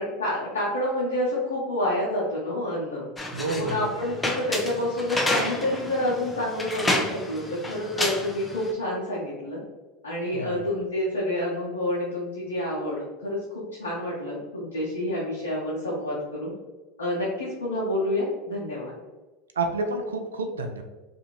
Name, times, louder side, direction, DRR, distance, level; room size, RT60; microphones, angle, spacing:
voice 1, 0.0-3.1 3.6-9.6 10.0-16.5 17.0-19.0, left 1 dB, 85° left, -6 dB, 0.7 m, -28 dB
sound 1, 3.2-8.7, left 1 dB, 10° left, 0.5 m, -30 dB
voice 2, 3.3-3.9 10.3-10.6 19.6-20.8, right 3 dB, 85° right, 5 dB, 0.3 m, -29 dB
2.6 x 2.5 x 2.9 m, 1.2 s
hypercardioid pair, 85°, 0 cm